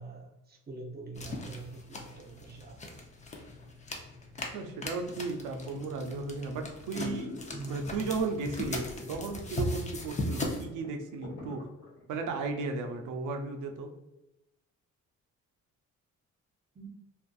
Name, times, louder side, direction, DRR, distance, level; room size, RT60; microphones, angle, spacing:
voice 1, 0.0-2.9 7.5-8.1 16.7-16.9, right 3 dB, 30° right, 1 dB, 0.6 m, -44 dB
sound 1, 1.1-10.6, left 2 dB, 25° left, 0.5 m, -39 dB
voice 2, 4.5-7.3 7.7-11.6 12.1-13.9, right 3 dB, 80° right, 5 dB, 0.5 m, -35 dB
sound 2, 5.7-6.1 6.5-6.6 6.9-7.9 8.6-9.3 9.6-9.7 10.1-10.2 10.5-12.4 12.8-12.9, left 1 dB, 60° left, 1.3 m, -44 dB
2.5 x 2.4 x 2.3 m, 0.94 s
cardioid pair, 90°, 30 cm